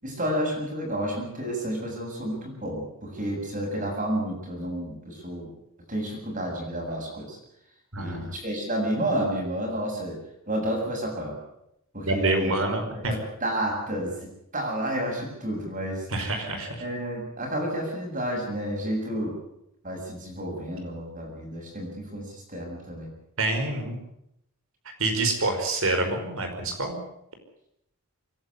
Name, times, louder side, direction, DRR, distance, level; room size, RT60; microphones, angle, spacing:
voice 1, 0.0-5.5 5.9-7.4 8.0-10.2 10.5-11.3 11.9-16.1 16.8-19.4 19.8-23.1, right 1 dB, 35° right, 0 dB, 7.5 m, -30 dB
voice 2, 7.9-8.3 12.1-13.1 16.1-16.7 23.4-24.0 25.0-27.0, right 2 dB, 70° right, 5 dB, 5.3 m, -27 dB
25.0 x 12.0 x 9.8 m, 0.80 s
head